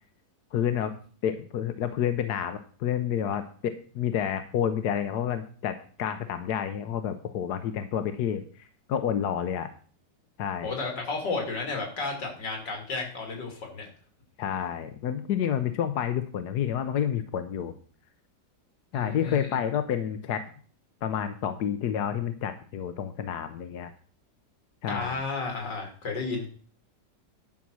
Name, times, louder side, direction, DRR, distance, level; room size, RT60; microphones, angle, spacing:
voice 1, 0.5-0.9 1.2-9.7 10.4-10.7 14.4-17.7 18.9-20.4 21.0-23.9 24.8-25.2, left 9 dB, 70° left, 9 dB, 1.3 m, -29 dB
voice 2, 10.6-13.9 18.9-19.6 24.9-26.5, left 3 dB, 85° left, 2 dB, 3.3 m, -32 dB
11.0 x 5.8 x 6.2 m, 0.43 s
omnidirectional pair, 1.8 m